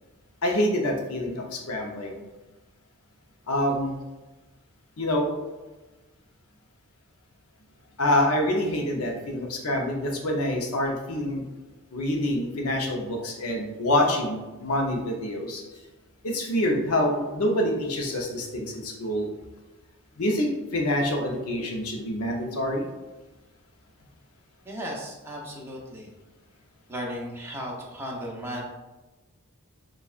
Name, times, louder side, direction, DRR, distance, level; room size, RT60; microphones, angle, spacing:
voice 1, 0.4-2.2 3.5-4.0 5.0-5.3 8.0-11.4 11.9-15.6 16.2-19.3 20.2-22.9, left 1 dB, 75° left, 1 dB, 0.7 m, -26 dB
voice 2, 24.7-26.1 26.9-28.6, equal, 10° right, -3 dB, 0.8 m, -35 dB
6.8 x 2.4 x 2.4 m, 1.1 s
head